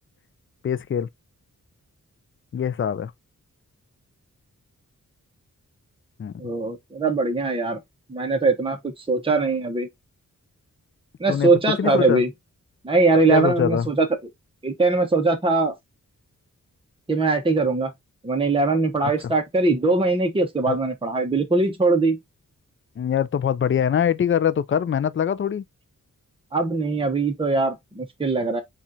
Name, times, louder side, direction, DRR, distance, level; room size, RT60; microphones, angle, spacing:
voice 1, 0.6-1.1 2.5-3.1 6.2-6.3 11.3-11.5 11.8-12.2 13.3-13.9 20.7-20.8 23.0-25.6, left 8 dB, 40° left, 0.4 m, -23 dB
voice 2, 6.4-7.8 8.1-9.9 11.2-12.3 12.8-14.1 14.6-15.7 17.1-17.9 18.2-22.2 26.5-28.6, right 3 dB, 15° right, 0.9 m, -21 dB
7.3 x 2.5 x 2.6 m
wide cardioid pair, 115°, 32 cm